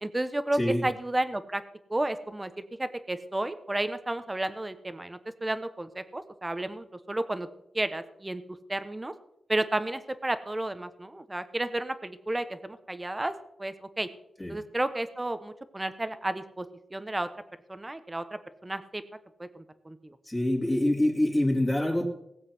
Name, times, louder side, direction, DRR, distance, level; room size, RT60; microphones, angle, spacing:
voice 1, 0.0-1.6 1.9-2.5 2.8-7.5 7.7-8.4 8.7-9.1 9.5-14.1 14.5-16.6 16.9-17.3 17.7-19.0 19.4-20.2, right 1 dB, 15° right, 12 dB, 1.1 m, -32 dB
voice 2, 20.3-22.1, left 1 dB, 15° left, -1 dB, 2.7 m, -25 dB
18.5 x 7.7 x 6.1 m, 0.80 s
wide cardioid pair, 110°, 0 cm